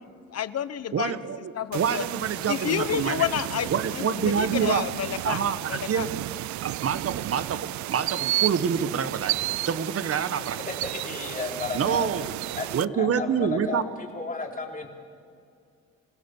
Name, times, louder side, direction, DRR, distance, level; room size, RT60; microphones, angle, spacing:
voice 1, 0.3-1.2 1.5-2.0 2.5-5.4 5.7-6.1, left 9 dB, 55° left, 14 dB, 1.0 m, -29 dB
voice 2, 0.9-3.3 3.7-4.8 5.2-6.2 6.6-9.3 9.6-10.6 11.7-12.3 12.7-13.8, right 7 dB, 50° right, 12 dB, 1.3 m, -27 dB
sound 1, 1.7-12.8, right 16 dB, 70° right, 0.5 m, -32 dB
voice 3, 10.6-12.1 12.6-12.7 12.9-14.9, left 3 dB, 30° left, 1 dB, 3.7 m, -33 dB
27.5 x 16.5 x 7.3 m, 2.3 s
cardioid pair, 90°, 30 cm